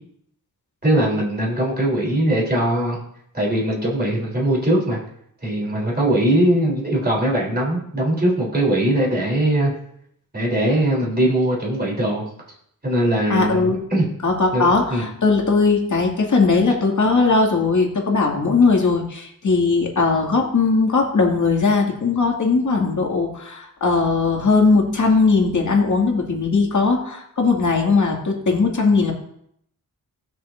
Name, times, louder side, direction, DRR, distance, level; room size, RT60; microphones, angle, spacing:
voice 1, 0.8-3.0 3.3-5.0 5.4-9.7 10.3-12.2 12.8-14.1 14.5-15.1, right 1 dB, 25° right, -3 dB, 3.6 m, -20 dB
voice 2, 13.3-13.8 14.2-29.1, left 4 dB, 55° left, 0 dB, 2.2 m, -19 dB
19.5 x 6.7 x 2.6 m, 0.71 s
wide cardioid pair, 130°, 35 cm